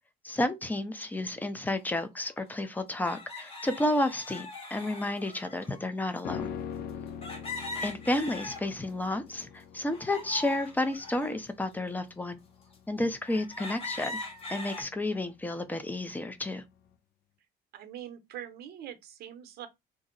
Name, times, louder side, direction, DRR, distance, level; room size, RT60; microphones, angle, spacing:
voice 1, 0.2-6.5 7.8-12.4 12.9-14.2 14.5-16.6, left 1 dB, 10° left, 0.5 m, -31 dB
sound 1, 1.9-2.0 3.1-5.8 7.2-9.0 9.4-11.4 12.0-12.1 12.7-12.8 13.2-14.8, left 2 dB, 35° left, 1.0 m, -41 dB
sound 2, 6.2-15.6 15.9-16.0, left 8 dB, 65° left, 0.4 m, -43 dB
voice 2, 17.7-19.7, right 10 dB, 70° right, 0.7 m, -43 dB
2.6 x 2.0 x 3.7 m
cardioid pair, 110°, 17 cm